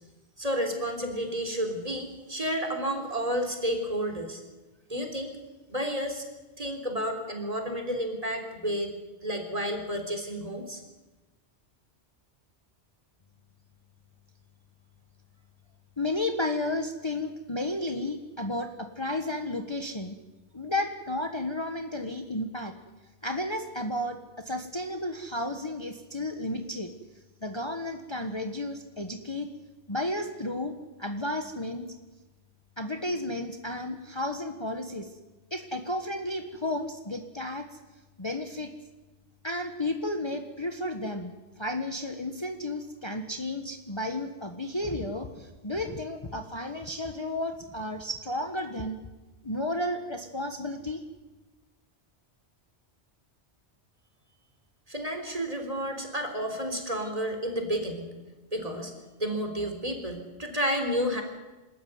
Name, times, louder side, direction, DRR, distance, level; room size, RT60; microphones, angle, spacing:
voice 1, 0.4-4.4 4.9-5.4 5.7-6.2 6.6-8.9 9.2-10.8 54.9-58.1 58.5-58.9 59.2-61.2, equal, 35° right, 5 dB, 3.7 m, -31 dB
voice 2, 16.0-20.1 20.5-22.7 23.2-26.9 27.4-29.5 29.9-30.7 31.0-31.9 32.8-35.1 35.5-37.8 38.2-38.7 39.4-49.0 49.4-51.0, left 1 dB, 25° left, 5 dB, 1.3 m, -32 dB
27.0 x 13.5 x 9.4 m, 1.2 s
omnidirectional pair, 1.2 m